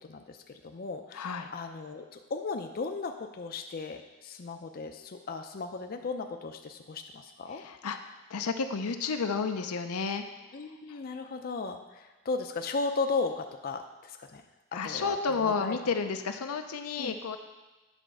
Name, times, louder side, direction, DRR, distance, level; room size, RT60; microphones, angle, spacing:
voice 1, 0.0-7.6 10.5-14.4 14.7-15.2 15.4-15.8 17.0-17.1, left 4 dB, 40° left, 5 dB, 0.5 m, -36 dB
voice 2, 1.1-1.5 7.5-8.0 8.3-10.2 10.9-11.0 14.7-17.4, left 5 dB, 90° left, 6 dB, 0.6 m, -31 dB
9.0 x 4.2 x 6.1 m, 1.1 s
head